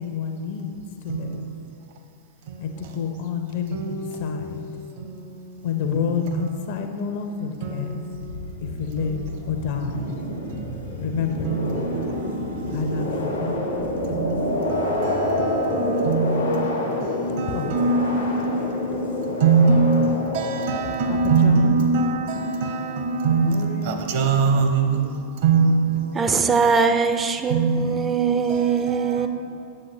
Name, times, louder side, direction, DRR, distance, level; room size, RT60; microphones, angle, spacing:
voice 1, 0.0-1.4 2.6-4.8 5.6-8.0 8.6-10.2 11.0-11.6 12.7-13.5 17.5-17.7 21.1-21.7 23.2-24.2, left 6 dB, 50° left, 0.7 m, -29 dB
sound 1, 8.1-21.5, left 1 dB, 80° left, 1.1 m, -27 dB
voice 2, 16.1-16.4 17.7-18.4 19.4-25.0 25.4-25.8 27.5-27.8 28.5-28.6, right 4 dB, 50° right, 0.8 m, -21 dB
voice 3, 26.1-29.3, right 5 dB, 20° right, 0.4 m, -21 dB
8.6 x 7.4 x 3.2 m
figure-of-eight pair, 90°, 0 cm